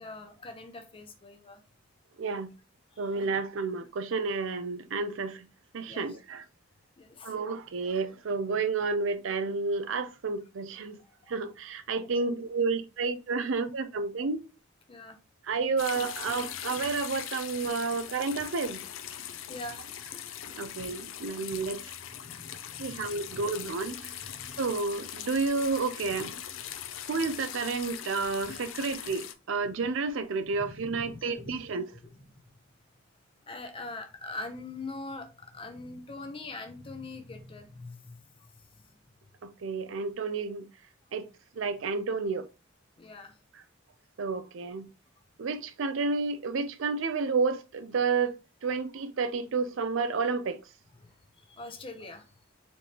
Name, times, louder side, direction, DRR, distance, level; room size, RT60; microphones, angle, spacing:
voice 1, 0.0-1.6 2.9-3.3 5.9-6.2 7.0-7.3 10.7-10.8 11.2-11.4 12.0-12.1 14.9-15.2 19.5-19.8 22.1-23.4 24.2-24.6 26.2-26.3 26.6-26.7 30.6-31.6 32.1-32.4 33.5-39.0 43.0-43.4 51.0-52.3, left 2 dB, 25° left, 0.6 m, -43 dB
voice 2, 2.2-2.5 3.0-5.4 5.7-6.4 7.2-11.0 11.3-14.4 15.5-18.8 20.5-21.8 22.8-24.1 24.6-26.3 27.1-31.8 39.4-40.6 41.1-41.3 41.6-42.5 44.2-44.9 45.4-48.3 48.6-50.6, right 4 dB, 65° right, 0.5 m, -30 dB
sound 1, 15.8-29.3, left 10 dB, 70° left, 0.5 m, -41 dB
4.3 x 3.2 x 2.9 m
head